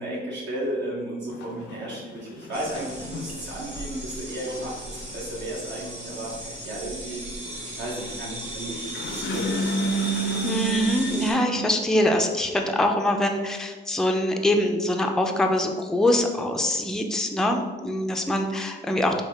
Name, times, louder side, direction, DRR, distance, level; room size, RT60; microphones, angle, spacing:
voice 1, 0.0-7.2 7.8-9.6, right 1 dB, 60° right, -5 dB, 0.8 m, -34 dB
sound 1, 1.3-11.7, right 1 dB, 65° left, 0.4 m, -32 dB
sound 2, 2.5-11.3, right 1 dB, 35° right, 1.2 m, -36 dB
voice 2, 10.4-19.2, left 1 dB, 5° left, 3 dB, 0.3 m, -24 dB
3.6 x 2.3 x 3.3 m, 1.3 s
cardioid pair, 90°, 20 cm